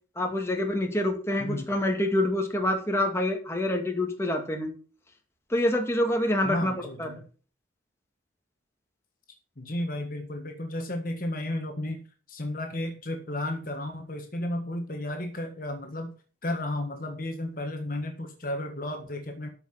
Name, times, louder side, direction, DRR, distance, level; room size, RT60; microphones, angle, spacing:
voice 1, 0.2-4.7 5.5-6.7 7.0-7.2, left 1 dB, 15° left, 2 dB, 2.2 m, -26 dB
voice 2, 6.4-7.2 9.6-12.0 12.3-16.2 16.4-19.5, left 1 dB, 45° left, 4 dB, 1.6 m, -33 dB
13.0 x 5.8 x 5.9 m, 0.38 s
head